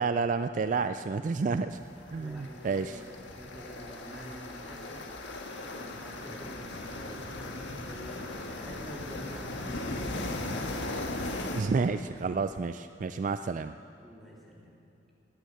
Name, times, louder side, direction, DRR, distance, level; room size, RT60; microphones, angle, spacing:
voice 1, 0.0-1.8 2.1-2.9 11.5-13.7, right 4 dB, 40° right, 10 dB, 0.3 m, -30 dB
sound 1, 1.7-11.6, left 2 dB, 70° left, 1.5 m, -38 dB
voice 2, 2.1-5.0 5.6-10.8 14.0-14.8, equal, ahead, -4 dB, 2.7 m, -47 dB
20.0 x 9.4 x 7.8 m, 2.8 s
head